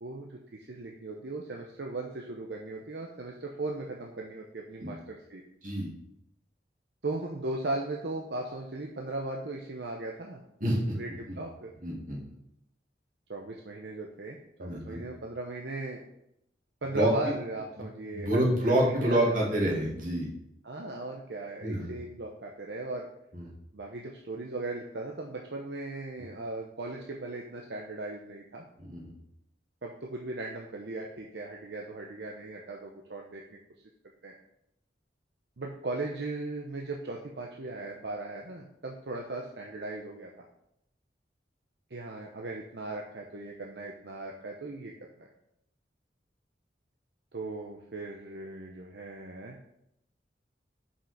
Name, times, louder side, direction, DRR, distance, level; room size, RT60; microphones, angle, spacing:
voice 1, 0.0-5.4 7.0-10.4 10.9-11.7 13.3-16.0 16.8-19.5 20.6-23.1 23.7-28.6 29.8-33.4 34.2-34.3 35.6-40.3 41.9-44.9 45.2-45.3 47.3-49.6, right 2 dB, 70° right, 0 dB, 0.8 m, -38 dB
voice 2, 10.6-11.0 11.8-12.2 14.6-15.0 16.9-17.1 18.1-20.3 21.6-21.9 23.3-23.5 28.8-29.1, right 1 dB, 50° right, -3 dB, 2.3 m, -27 dB
5.8 x 5.5 x 5.7 m, 0.78 s
head